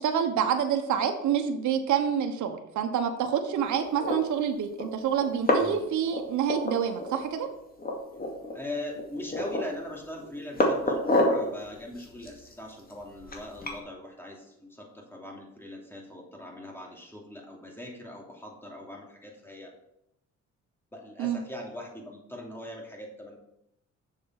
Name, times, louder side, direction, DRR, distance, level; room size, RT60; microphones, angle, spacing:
voice 1, 0.0-7.5 21.2-21.4, right 8 dB, 75° right, 5 dB, 1.1 m, -27 dB
sound 1, 3.8-4.2 4.8-4.9 5.2-5.8 6.1-7.2 7.4-7.5 7.8-8.6 8.9-9.8 10.2-11.5 12.0-13.8, left 1 dB, 30° left, 2.2 m, -28 dB
voice 2, 8.5-19.7 20.9-23.4, left 1 dB, 5° left, -1 dB, 2.8 m, -41 dB
7.3 x 6.8 x 5.9 m, 0.82 s
cardioid pair, 90°, 30 cm